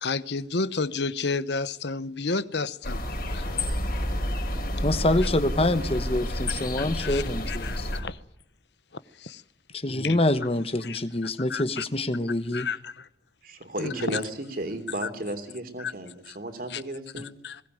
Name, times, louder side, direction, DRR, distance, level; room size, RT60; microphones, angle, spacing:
voice 1, 0.0-3.5 6.8-8.2 9.2-9.4 9.8-10.2 10.8-11.8 12.5-13.1 13.8-14.2 15.0-15.1 15.8-15.9 16.3-16.4 16.7-16.8 17.4-17.6, left 4 dB, 65° left, 1.0 m, -32 dB
sound 1, 2.8-8.0, left 1 dB, 50° left, 5.0 m, -29 dB
voice 2, 4.8-7.9 9.7-12.7, left 1 dB, 30° left, 1.1 m, -26 dB
voice 3, 13.4-17.3, right 1 dB, 50° right, 3.3 m, -34 dB
21.5 x 18.0 x 9.4 m
head